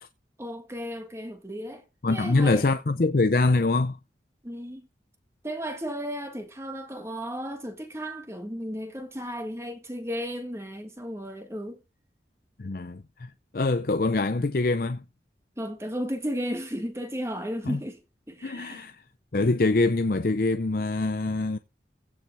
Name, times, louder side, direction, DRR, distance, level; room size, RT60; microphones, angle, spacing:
voice 1, 0.4-1.8 2.1-2.6 4.4-4.9 5.4-11.8 15.6-18.0 18.3-18.9, equal, 15° right, 1.7 m, -34 dB
voice 2, 2.0-4.0 12.6-15.0 17.6-17.8 18.4-19.0 19.3-21.6, left 3 dB, 55° left, 0.6 m, -24 dB
16.0 x 5.8 x 4.7 m
head